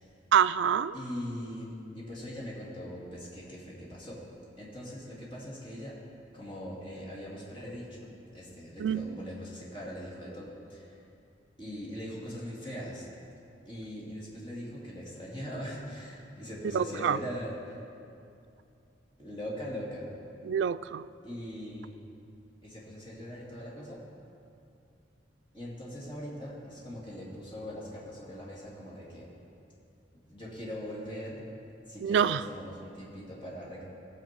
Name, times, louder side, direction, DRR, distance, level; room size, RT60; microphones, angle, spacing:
voice 1, 0.3-0.9 8.8-9.1 16.7-17.2 20.4-21.0 32.0-32.4, right 8 dB, 80° right, 15 dB, 0.3 m, -26 dB
voice 2, 0.9-4.2 4.6-5.9 6.3-11.0 11.6-13.1 13.6-17.8 19.2-20.1 21.2-21.9 22.6-24.0 25.5-29.3 30.3-31.4 31.9-33.8, equal, 30° left, -6 dB, 2.8 m, -41 dB
17.5 x 7.2 x 4.6 m, 2.6 s
head